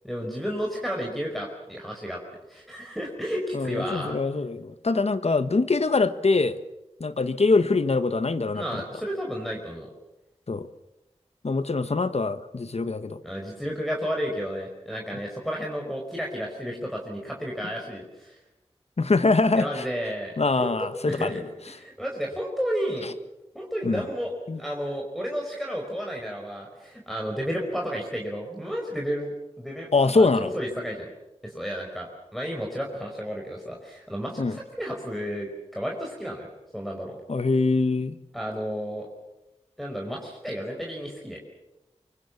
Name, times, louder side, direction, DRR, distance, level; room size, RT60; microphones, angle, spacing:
voice 1, 0.0-2.2 2.5-4.2 8.5-9.9 13.2-18.4 19.6-23.1 23.5-24.3 24.6-31.1 31.4-37.2 38.3-39.1 39.8-41.4, equal, ahead, -1 dB, 4.9 m, -32 dB
voice 2, 3.5-6.6 7.0-8.8 10.5-10.7 11.4-13.2 19.0-19.9 20.4-21.3 23.8-24.0 24.5-24.6 29.9-30.5 34.4-34.6 37.3-38.2, left 3 dB, 65° left, 12 dB, 1.4 m, -23 dB
25.0 x 24.0 x 7.2 m, 0.94 s
wide cardioid pair, 70°, 12 cm